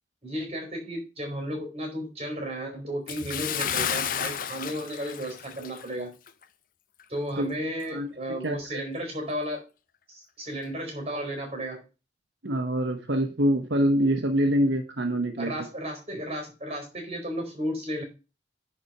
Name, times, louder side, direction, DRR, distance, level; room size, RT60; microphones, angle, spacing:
voice 1, 0.2-6.1 7.1-9.7 10.1-11.8 15.4-18.0, equal, 35° right, 2 dB, 4.2 m, -34 dB
Bathtub (filling or washing) / Splash splatter, 3.1-5.9 6.3-6.4 7.0-7.1, left 8 dB, 50° left, 0.6 m, -32 dB
voice 2, 8.4-8.8 12.4-15.6, equal, 85° right, 5 dB, 1.1 m, -25 dB
10.0 x 4.3 x 5.4 m, 0.30 s
head